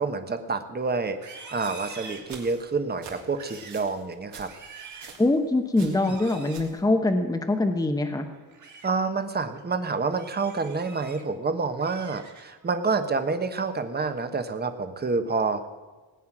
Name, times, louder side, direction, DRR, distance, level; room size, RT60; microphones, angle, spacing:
voice 1, 0.0-4.5 5.8-6.2 8.8-15.7, right 4 dB, 25° right, 8 dB, 1.1 m, -28 dB
Livestock farm animals working animals, 1.1-2.8 3.2-3.8 4.3-5.2 6.0-6.6 8.3-8.9 9.4-9.6 10.1-11.2 11.6-12.7 13.1-13.4 13.8-14.2, right 4 dB, 45° right, 2.2 m, -46 dB
sound 1, 1.8-5.4 5.7-6.8, right 5 dB, 80° right, 2.9 m, -46 dB
voice 2, 5.2-8.3, left 2 dB, 10° left, 5 dB, 1.0 m, -23 dB
18.5 x 9.4 x 6.1 m, 1.3 s
wide cardioid pair, 140°, 40 cm